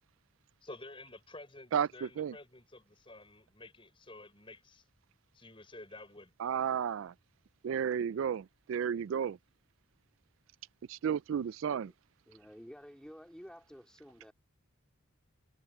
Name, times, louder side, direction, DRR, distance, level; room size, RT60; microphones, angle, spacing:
voice 1, 0.6-4.8 5.3-6.3, left 2 dB, 25° left, 5.3 m, -51 dB
voice 2, 1.7-2.3 6.4-7.1 7.6-9.4 10.9-11.9, right 8 dB, 70° right, 0.3 m, -33 dB
voice 3, 12.3-14.3, equal, 5° left, 2.2 m, -52 dB
head